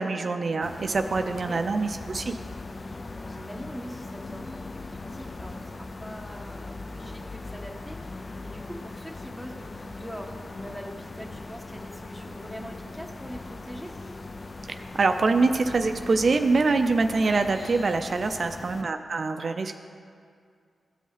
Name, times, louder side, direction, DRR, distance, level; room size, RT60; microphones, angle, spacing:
voice 1, 0.0-2.4 14.7-19.7, right 3 dB, 55° right, 7 dB, 0.4 m, -25 dB
sound 1, 0.6-18.8, left 3 dB, 40° left, 0.4 m, -40 dB
voice 2, 1.2-1.6 2.9-13.9 18.3-18.6, equal, 10° left, 1 dB, 1.3 m, -43 dB
15.5 x 5.3 x 3.3 m, 2.2 s
cardioid pair, 60°, 0 cm